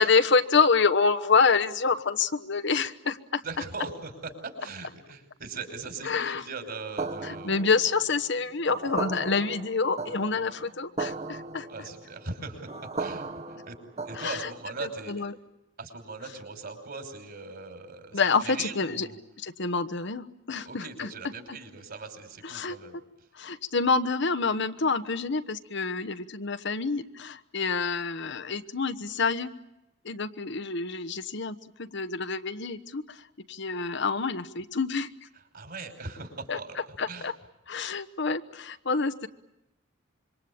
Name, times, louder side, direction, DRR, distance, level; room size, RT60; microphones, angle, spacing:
voice 1, 0.0-3.4 6.0-6.4 7.2-11.7 14.1-14.5 14.8-15.3 18.1-19.1 19.4-21.1 21.5-21.6 22.4-22.8 23.3-29.5 30.0-33.2 33.5-35.1 36.5-36.6 37.0-37.3 37.7-39.3, left 4 dB, 65° left, 11 dB, 1.2 m, -27 dB
voice 2, 3.4-4.1 4.4-7.6 11.7-13.3 13.7-13.8 14.0-15.3 15.8-19.2 20.7-23.0 35.5-36.8 37.1-37.3, right 4 dB, 55° right, 6 dB, 5.6 m, -40 dB
sound 1, 7.0-14.8, right 3 dB, 35° right, 1.4 m, -37 dB
26.5 x 23.5 x 8.7 m, 0.86 s
head